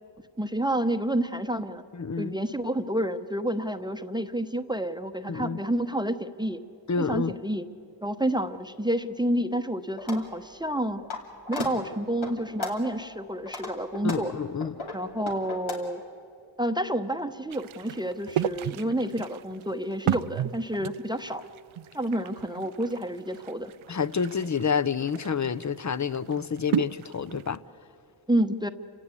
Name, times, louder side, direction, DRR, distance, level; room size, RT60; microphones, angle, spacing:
voice 1, 0.4-1.8 2.2-6.6 7.1-7.6 8.0-11.0 11.5-14.3 14.9-16.0 16.6-21.5 21.9-23.7 28.3-28.7, right 1 dB, 10° right, 0.8 m, -29 dB
voice 2, 1.9-2.3 5.3-5.6 6.9-7.4 14.0-14.8 23.9-27.6, left 6 dB, 40° left, 0.7 m, -28 dB
sound 1, 10.0-10.2 10.7-11.2 11.5-11.7 12.2-12.9 13.3-15.7, left 3 dB, 80° left, 2.9 m, -35 dB
sound 2, 17.5-27.6, right 11 dB, 85° right, 0.5 m, -34 dB
29.0 x 17.0 x 8.3 m
cardioid pair, 60°, 47 cm